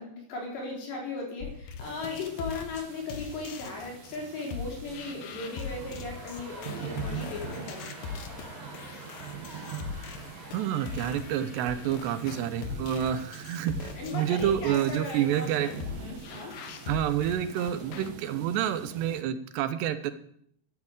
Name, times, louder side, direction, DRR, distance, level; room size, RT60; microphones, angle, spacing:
voice 1, 0.0-7.9 13.9-16.6, left 3 dB, 85° left, -1 dB, 6.5 m, -37 dB
sound 1, 1.4-18.1, left 6 dB, 65° left, 2.6 m, -41 dB
sound 2, 1.8-19.2, right 9 dB, 65° right, 2.6 m, -44 dB
sound 3, 5.3-13.7, left 1 dB, 20° left, 6.0 m, -48 dB
voice 2, 10.5-15.7 16.9-20.1, right 10 dB, 80° right, 11 dB, 3.1 m, -28 dB
12.5 x 10.5 x 8.1 m, 0.67 s
omnidirectional pair, 4.8 m